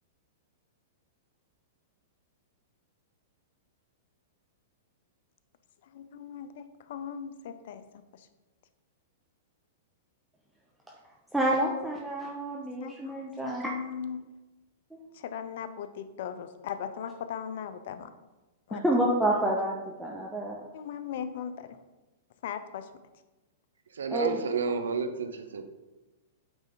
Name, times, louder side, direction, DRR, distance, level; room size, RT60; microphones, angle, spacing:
voice 1, 5.8-8.3 12.8-14.2 15.1-18.1 18.7-18.8 20.7-21.8 22.4-22.9, left 8 dB, 65° left, 11 dB, 0.5 m, -38 dB
voice 2, 11.3-13.7 14.9-15.0 18.7-20.6 24.1-24.4, right 1 dB, 5° right, -3 dB, 0.7 m, -28 dB
voice 3, 23.9-25.6, right 5 dB, 85° right, 8 dB, 0.6 m, -31 dB
8.7 x 3.3 x 3.9 m, 1.1 s
hypercardioid pair, 120°, 0 cm